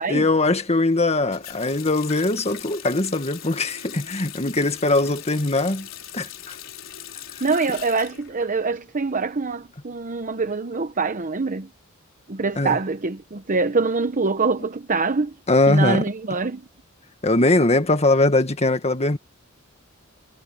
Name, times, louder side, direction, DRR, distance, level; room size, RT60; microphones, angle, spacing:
voice 1, 0.1-5.9 6.1-6.6 12.6-12.8 15.5-16.0 17.2-19.2, left 2 dB, 30° left, 1.8 m, -21 dB
Water tap faucet, 1.3-9.1 9.4-10.4, left 10 dB, 70° left, 5.4 m, -40 dB
voice 2, 7.4-11.7 12.3-15.3 15.7-16.6, right 4 dB, 40° right, 0.9 m, -24 dB
head